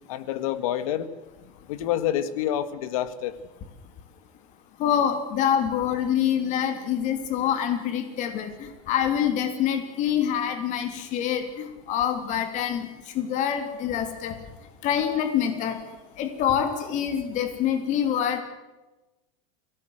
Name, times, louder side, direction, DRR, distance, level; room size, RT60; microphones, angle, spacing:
voice 1, 0.1-1.1 1.7-3.3, left 11 dB, 75° left, 13 dB, 1.8 m, -27 dB
voice 2, 4.8-14.4 14.8-15.8 16.2-18.4, left 9 dB, 45° left, 7 dB, 3.0 m, -26 dB
24.0 x 17.5 x 8.0 m, 1.1 s
supercardioid pair, 140°, 18 cm